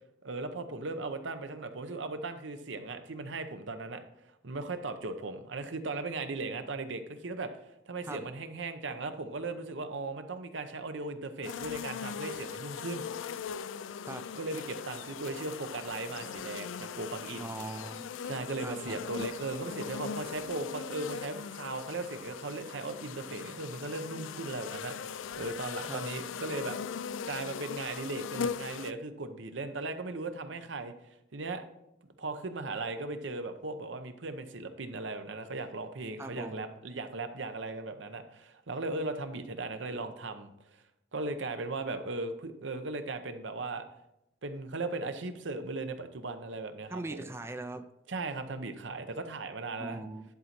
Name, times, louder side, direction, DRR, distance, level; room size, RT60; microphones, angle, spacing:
voice 1, 0.2-4.0 4.4-7.5 7.9-13.0 14.3-17.5 18.2-26.8 27.3-30.9 31.3-31.6 32.2-40.8 41.1-43.9 44.4-47.2 48.1-50.0, right 3 dB, 70° right, 8 dB, 0.8 m, -37 dB
sound 1, 11.4-28.9, left 7 dB, 85° left, 0.4 m, -40 dB
voice 2, 17.4-18.1 18.6-19.1 25.9-26.0 36.2-36.6 46.9-47.9 49.8-50.2, right 2 dB, 15° right, 7 dB, 0.4 m, -40 dB
10.5 x 4.1 x 5.9 m, 0.85 s
head